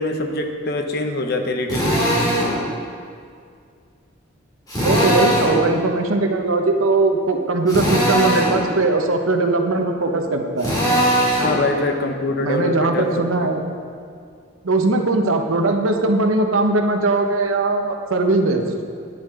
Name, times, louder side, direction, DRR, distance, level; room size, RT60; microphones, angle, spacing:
voice 1, 0.0-2.2 11.4-13.5, left 2 dB, 50° left, 5 dB, 0.8 m, -24 dB
Drill, 1.7-2.5 4.7-5.6 7.7-8.6 10.6-11.6, equal, 20° left, 2.6 m, -19 dB
voice 2, 4.8-10.7 12.4-13.6 14.6-18.6, right 2 dB, 90° right, 4 dB, 0.9 m, -19 dB
10.5 x 10.0 x 3.7 m, 2.3 s
head